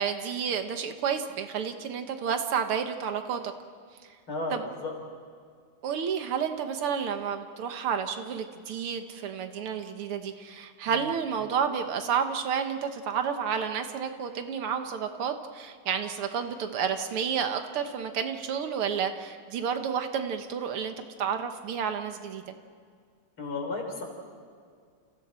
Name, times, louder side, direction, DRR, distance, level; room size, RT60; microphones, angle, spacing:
voice 1, 0.0-3.4 4.5-4.6 5.8-22.4, right 7 dB, 90° right, 7 dB, 2.2 m, -30 dB
voice 2, 4.3-4.9 10.8-10.9 23.4-24.0, left 3 dB, 70° left, 1 dB, 5.2 m, -33 dB
30.0 x 29.0 x 4.4 m, 2.1 s
omnidirectional pair, 2.3 m